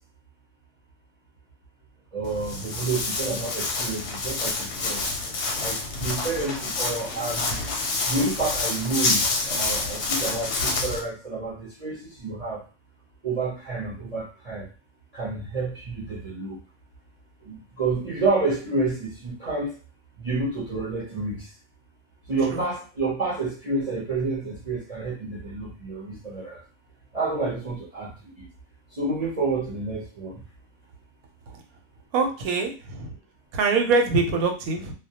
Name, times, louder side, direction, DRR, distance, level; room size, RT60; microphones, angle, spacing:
voice 1, 2.1-5.1 5.6-7.6 8.1-12.6 13.2-14.7 15.1-16.6 17.4-19.7 20.2-21.5 22.3-26.6 27.1-28.5 28.9-30.4, right 3 dB, 45° right, -5 dB, 0.5 m, -29 dB
Walk footsteps, 2.2-11.0, left 3 dB, 65° left, 0.7 m, -28 dB
voice 2, 32.1-33.1 33.5-34.9, right 4 dB, 85° right, 4 dB, 1.0 m, -24 dB
2.2 x 2.1 x 2.7 m, 0.34 s
omnidirectional pair, 1.4 m